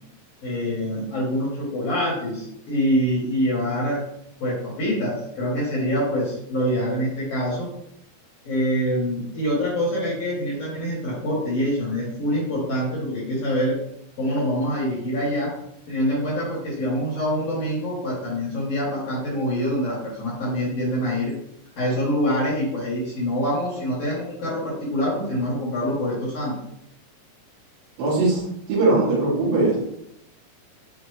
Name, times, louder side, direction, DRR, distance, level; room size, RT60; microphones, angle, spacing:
voice 1, 0.4-4.0 4.4-7.7 8.4-13.8 14.2-15.5 15.9-21.3 21.8-26.5, equal, 65° left, -5 dB, 1.5 m, -25 dB
voice 2, 28.0-28.4 28.7-30.0, right 2 dB, 75° right, -6 dB, 3.1 m, -20 dB
6.5 x 2.4 x 3.1 m, 0.76 s
omnidirectional pair, 4.3 m